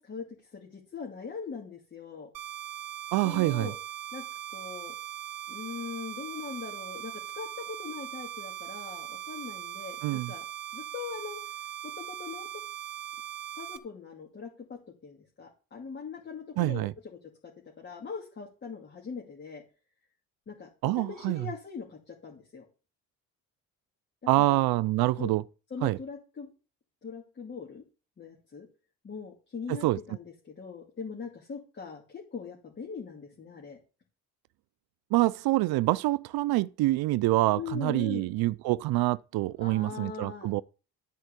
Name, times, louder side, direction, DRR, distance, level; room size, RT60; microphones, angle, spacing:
voice 1, 0.0-2.3 3.2-3.8 4.1-4.2 4.5-5.0 5.5-10.4 10.7-11.4 11.8-12.6 13.6-16.9 17.4-17.5 17.8-19.6 20.5-22.7 24.4-24.6 25.2-25.4 25.7-26.5 27.0-27.8 28.2-28.7 29.0-33.8 37.5-38.3 39.6-40.5, left 5 dB, 30° left, 2.4 m, -41 dB
sound 1, 2.3-13.8, right 12 dB, 65° right, 1.6 m, -40 dB
voice 2, 3.1-3.7 10.0-10.3 16.6-16.9 20.8-21.5 24.3-25.4 25.8-26.0 29.8-30.0 35.1-40.6, right 18 dB, 90° right, 0.5 m, -26 dB
13.0 x 4.5 x 8.2 m
cardioid pair, 145°, 36 cm